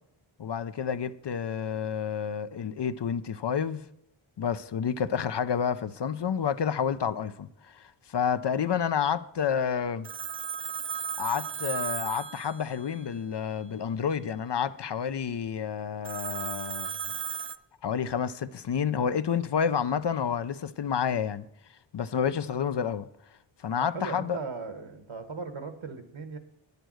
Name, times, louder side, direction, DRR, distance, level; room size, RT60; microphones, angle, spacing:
voice 1, 0.4-3.9 4.4-7.5 7.7-10.1 11.2-17.0 17.8-21.5 21.9-23.1 23.6-24.4, left 7 dB, 60° left, 0.6 m, -29 dB
Telephone, 10.0-13.1 16.0-17.6, right 7 dB, 30° right, 0.4 m, -35 dB
voice 2, 23.7-26.4, right 4 dB, 75° right, 1.3 m, -38 dB
9.2 x 6.7 x 6.3 m
wide cardioid pair, 40°, 48 cm